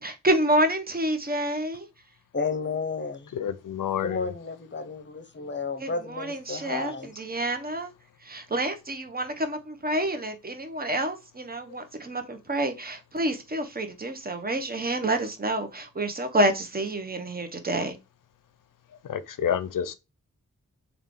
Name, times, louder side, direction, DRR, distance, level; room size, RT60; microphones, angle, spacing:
voice 1, 0.0-1.9 5.8-7.9 8.2-18.0, right 1 dB, 30° right, 0.9 m, -28 dB
voice 2, 2.3-3.3 4.0-7.1, left 4 dB, 35° left, 0.8 m, -32 dB
voice 3, 3.3-4.3 19.0-19.9, left 8 dB, 85° left, 0.5 m, -29 dB
3.3 x 2.4 x 3.6 m
cardioid pair, 40°, 31 cm